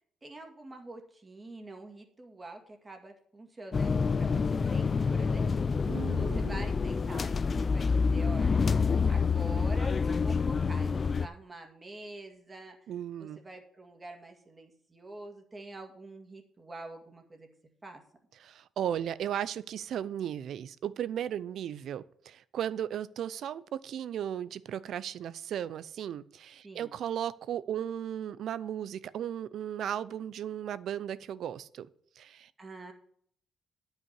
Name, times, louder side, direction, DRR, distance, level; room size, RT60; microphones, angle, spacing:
voice 1, 0.2-5.5 6.2-8.6 9.1-12.8 13.2-17.5 17.8-18.0 26.6-27.0 32.6-32.9, right 2 dB, 25° right, 3 dB, 2.1 m, -46 dB
sound 1, 3.7-11.3, left 5 dB, 35° left, 0.5 m, -27 dB
voice 2, 5.9-6.7 12.9-13.4 18.4-31.9 32.2-32.5, right 10 dB, 70° right, 17 dB, 0.5 m, -36 dB
9.8 x 5.7 x 7.5 m, 0.63 s
cardioid pair, 90°, 0 cm